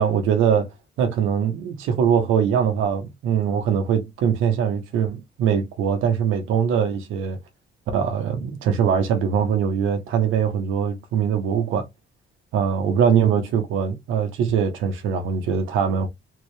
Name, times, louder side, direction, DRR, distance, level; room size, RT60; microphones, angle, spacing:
voice 1, 0.0-7.4 7.9-11.9 12.5-16.1, right 7 dB, 90° right, 0.9 m, -22 dB
3.8 x 2.7 x 3.2 m
cardioid pair, 90°, 20 cm